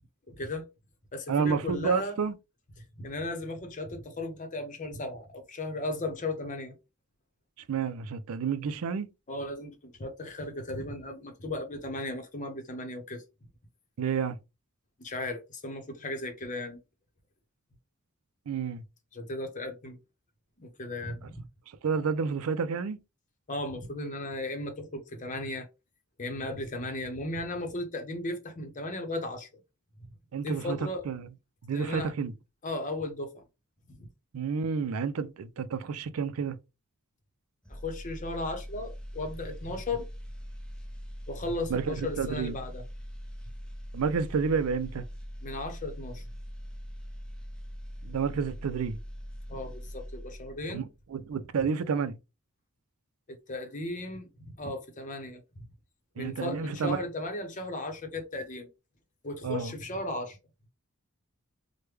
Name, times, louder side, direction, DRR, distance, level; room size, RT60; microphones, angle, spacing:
voice 1, 0.3-0.7 1.1-2.2 3.0-6.7 9.3-13.2 15.0-16.8 19.1-20.0 20.6-21.4 23.5-25.7 26.2-29.5 30.4-31.0 31.7-32.1 32.6-33.4 33.9-34.1 37.7-40.1 41.3-42.8 45.4-46.2 49.5-50.8 53.3-55.4 56.2-58.7 59.2-60.4, left 2 dB, 35° left, 0.8 m, -36 dB
voice 2, 1.3-2.4 7.7-9.1 14.0-14.4 18.5-18.8 21.7-23.0 30.3-30.8 31.0-31.3 31.6-32.3 34.3-36.6 41.7-42.6 43.9-45.0 48.0-49.0 50.7-52.2 56.2-57.0 59.4-59.7, right 6 dB, 80° right, 0.4 m, -30 dB
sound 1, 37.6-50.8 51.1-51.3, equal, 5° left, 0.4 m, -42 dB
3.3 x 2.2 x 3.2 m
head